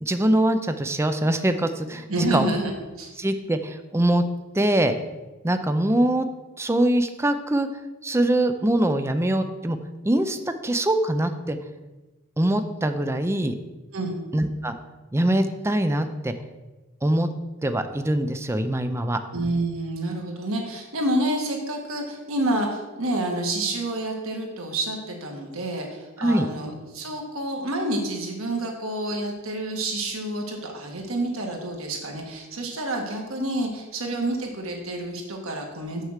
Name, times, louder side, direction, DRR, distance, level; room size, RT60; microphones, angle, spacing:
voice 1, 0.0-2.5 3.2-4.2 4.5-4.9 5.4-6.3 6.6-7.7 8.0-9.8 10.0-11.6 12.4-13.6 14.3-14.8 15.1-16.3 17.0-17.3 17.6-19.2 26.2-26.5, right 1 dB, 10° right, 8 dB, 0.5 m, -23 dB
voice 2, 2.1-3.1 13.9-14.2 19.3-36.1, right 1 dB, 75° right, 1 dB, 1.6 m, -28 dB
6.5 x 6.0 x 6.5 m, 1.2 s
head